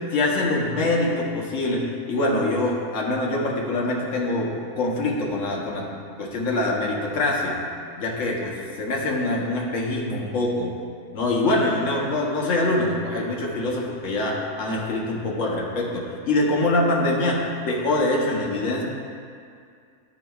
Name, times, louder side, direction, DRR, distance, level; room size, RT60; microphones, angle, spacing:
voice 1, 0.1-4.5 4.8-5.9 6.2-7.6 8.0-10.7 11.1-18.8, left 2 dB, 60° left, -2 dB, 1.2 m, -24 dB
9.3 x 4.9 x 2.3 m, 2.2 s
omnidirectional pair, 1.5 m